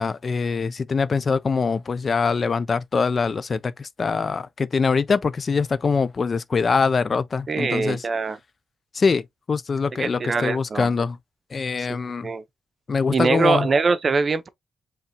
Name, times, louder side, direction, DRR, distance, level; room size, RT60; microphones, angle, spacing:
voice 1, 0.0-8.0 8.9-9.2 9.5-11.2 11.5-12.3 12.9-13.7, left 5 dB, 35° left, 0.3 m, -23 dB
voice 2, 7.5-8.4 10.0-10.9 11.8-11.9 12.2-12.4 13.1-14.5, right 4 dB, 35° right, 0.7 m, -23 dB
5.4 x 3.5 x 2.8 m
wide cardioid pair, 140°, 0 cm